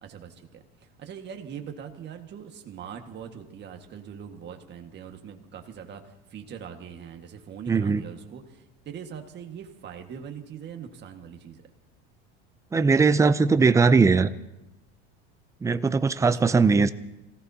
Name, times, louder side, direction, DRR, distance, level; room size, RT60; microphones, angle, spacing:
voice 1, 0.0-11.7 16.2-16.6, right 8 dB, 35° right, 4 dB, 1.7 m, -42 dB
voice 2, 7.7-8.0 12.7-14.3 15.6-16.9, right 4 dB, 10° right, 13 dB, 0.4 m, -20 dB
27.0 x 17.0 x 2.8 m, 0.98 s
supercardioid pair, 130°, 30 cm